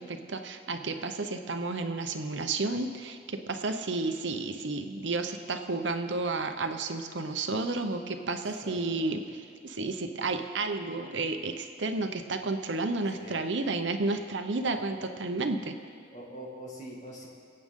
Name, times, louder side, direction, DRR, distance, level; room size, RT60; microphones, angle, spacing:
voice 1, 0.0-15.7, right 3 dB, 70° right, 7 dB, 0.8 m, -32 dB
voice 2, 8.2-9.1 13.1-13.4 14.6-14.8 16.1-17.3, equal, 40° left, -2 dB, 2.1 m, -44 dB
25.0 x 8.7 x 3.7 m, 2.4 s
head